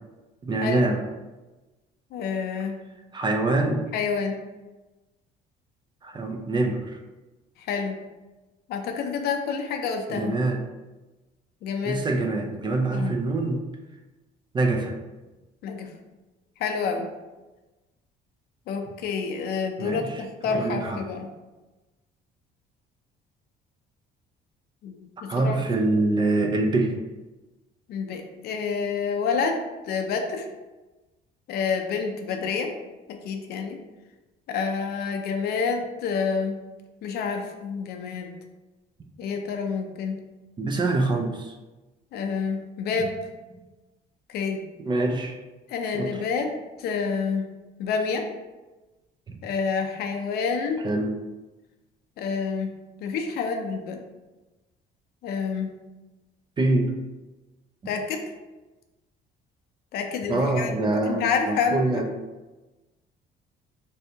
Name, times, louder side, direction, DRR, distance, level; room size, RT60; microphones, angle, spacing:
voice 1, 0.4-1.0 3.1-3.9 6.0-7.0 10.1-10.6 11.9-13.6 14.5-14.9 19.8-20.1 20.5-21.0 25.3-27.0 40.6-41.5 44.9-45.4 45.9-46.1 49.3-49.4 50.8-51.1 56.6-57.0 60.3-62.1, right 2 dB, 30° right, 4 dB, 0.4 m, -25 dB
voice 2, 2.1-2.7 3.9-4.4 7.6-8.0 8.7-10.4 11.6-12.1 12.9-13.2 15.6-15.9 16.6-17.1 18.7-21.3 24.8-25.6 27.9-30.5 31.5-32.7 33.1-33.8 34.5-36.6 37.0-38.3 39.2-40.2 42.1-43.2 44.3-44.7 45.7-47.5 47.8-48.3 49.4-50.9 52.2-54.0 55.2-55.8 57.9-58.3 59.9-62.0, left 5 dB, 70° left, 4 dB, 0.5 m, -28 dB
3.2 x 2.7 x 2.7 m, 1.1 s
cardioid pair, 110°, 17 cm